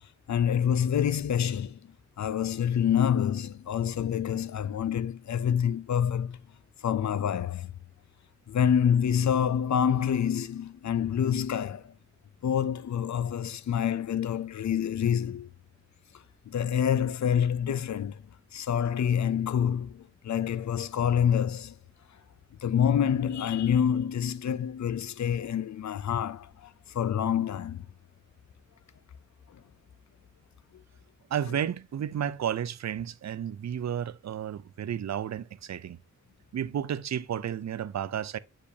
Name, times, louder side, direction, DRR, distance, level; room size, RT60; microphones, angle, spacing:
voice 1, 0.3-1.8 2.2-6.4 6.8-7.7 8.5-11.8 12.4-15.5 16.5-18.2 18.5-21.7 22.6-26.7 26.9-27.8, left 8 dB, 65° left, 0.5 m, -27 dB
voice 2, 31.3-36.0 36.5-38.4, right 9 dB, 60° right, 0.5 m, -32 dB
8.4 x 4.9 x 2.7 m
wide cardioid pair, 75°, 30 cm